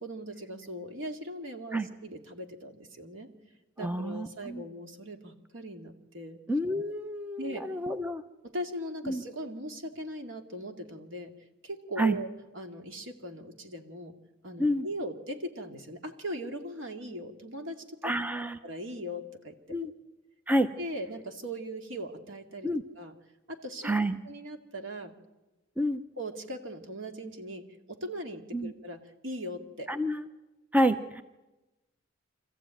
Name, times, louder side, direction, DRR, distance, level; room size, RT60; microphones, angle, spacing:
voice 1, 0.0-3.3 3.8-6.4 7.4-7.6 8.4-11.3 11.6-12.3 12.5-14.1 14.4-18.1 18.6-19.9 20.8-23.1 23.5-23.9 24.2-25.1 26.2-29.0 29.2-29.9, equal, 75° right, 5 dB, 2.3 m, -39 dB
voice 2, 3.8-4.6 6.5-8.2 9.1-9.2 12.0-12.2 14.6-14.9 18.0-18.6 19.7-19.9 20.5-20.7 22.6-22.8 23.8-24.2 25.8-26.0 28.5-28.7 29.9-30.3 30.7-31.2, equal, 10° right, 9 dB, 0.7 m, -28 dB
25.5 x 14.5 x 9.0 m, 1.1 s
head